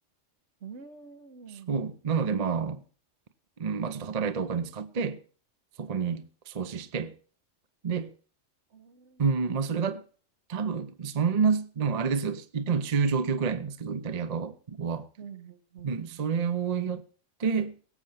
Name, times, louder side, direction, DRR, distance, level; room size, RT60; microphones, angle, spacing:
voice 1, 0.6-1.7 8.7-9.3 15.2-16.2, right 6 dB, 65° right, 1.4 m, -47 dB
voice 2, 1.7-2.8 3.6-5.2 5.8-7.1 7.8-8.1 9.2-10.0 10.5-15.1 15.8-17.0 17.4-17.7, right 5 dB, 40° right, 0.7 m, -28 dB
18.0 x 7.8 x 5.7 m
omnidirectional pair, 1.3 m